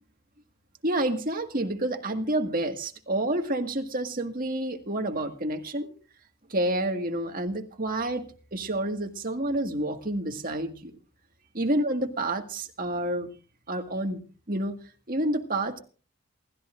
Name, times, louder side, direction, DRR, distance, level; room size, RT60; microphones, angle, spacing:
voice 1, 0.8-5.9 6.5-10.9 11.5-13.3 13.7-14.2 14.5-14.8 15.1-15.8, right 1 dB, 40° right, 5 dB, 1.8 m, -29 dB
27.5 x 13.5 x 2.6 m, 0.38 s
head